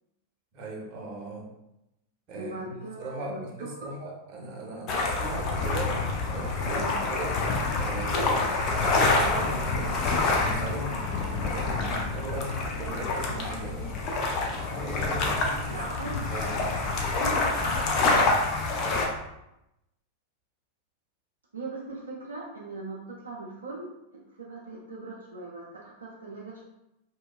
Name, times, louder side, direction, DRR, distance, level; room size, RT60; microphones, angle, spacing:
voice 1, 0.5-1.5 2.3-2.7 3.0-6.0 6.3-7.4 7.7-13.9 14.6-15.7 16.3-16.5 18.8-19.1, right 2 dB, 40° right, -2 dB, 0.7 m, -38 dB
voice 2, 2.3-3.9 6.6-7.0 8.2-8.4 15.7-16.5 16.8-18.2 21.5-26.6, right 2 dB, 75° right, -4 dB, 0.4 m, -40 dB
sound 1, 4.9-19.1, left 3 dB, 35° left, 0.4 m, -27 dB
2.7 x 2.2 x 2.2 m, 0.89 s
figure-of-eight pair, 90°, 0 cm